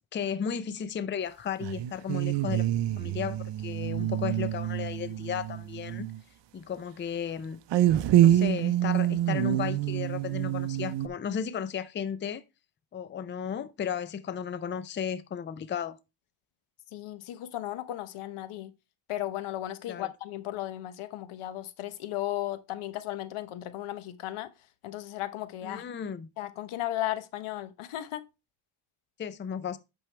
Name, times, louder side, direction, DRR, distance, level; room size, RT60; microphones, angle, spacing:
voice 1, 0.0-2.7 3.0-6.1 6.5-7.6 8.2-12.4 12.9-16.0 19.9-20.1 25.6-26.3 29.2-29.8, left 7 dB, 25° left, 0.5 m, -34 dB
sound 1, 1.6-6.2 7.7-11.1, right 12 dB, 60° right, 0.7 m, -26 dB
voice 2, 16.9-18.7 19.1-24.5 24.8-25.8 26.4-28.2, left 14 dB, 90° left, 1.0 m, -35 dB
9.0 x 6.2 x 3.3 m
cardioid pair, 145°, 48 cm